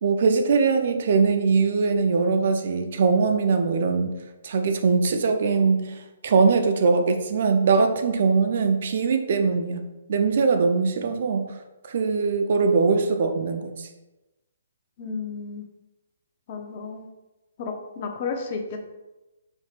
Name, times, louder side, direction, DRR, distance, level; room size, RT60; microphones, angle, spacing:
voice 1, 0.0-4.1 4.4-9.8 10.1-11.5 11.8-13.9, right 4 dB, 55° right, 6 dB, 0.5 m, -21 dB
voice 2, 15.0-15.6 16.5-17.1 17.6-19.0, left 4 dB, 45° left, 3 dB, 0.7 m, -33 dB
4.5 x 4.4 x 2.5 m, 1.0 s
hypercardioid pair, 140°, 0 cm